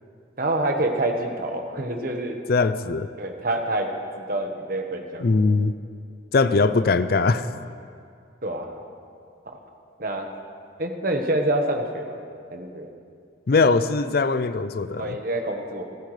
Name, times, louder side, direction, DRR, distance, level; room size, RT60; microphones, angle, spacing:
voice 1, 0.4-2.4 3.2-3.9 4.3-5.3 8.4-8.7 9.4-9.6 10.0-10.3 10.8-12.2 12.5-12.9 15.0-15.8, right 1 dB, 50° right, 4 dB, 1.3 m, -26 dB
voice 2, 2.5-3.1 5.2-5.7 6.3-7.5 13.5-15.2, left 4 dB, 55° left, 13 dB, 0.4 m, -21 dB
28.0 x 10.5 x 3.3 m, 2.3 s
head